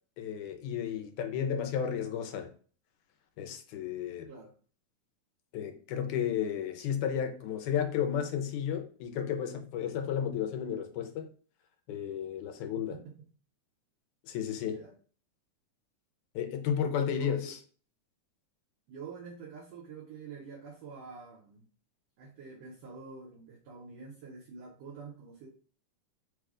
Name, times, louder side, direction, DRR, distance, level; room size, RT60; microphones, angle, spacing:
voice 1, 0.2-2.5 3.4-4.3 5.5-11.3 11.9-13.0 14.3-14.8 16.4-17.6, left 8 dB, 80° left, 2.1 m, -33 dB
voice 2, 14.6-14.9 17.1-17.5 18.9-21.7 22.2-25.5, right 5 dB, 65° right, 1.9 m, -46 dB
4.8 x 2.3 x 4.8 m
omnidirectional pair, 3.5 m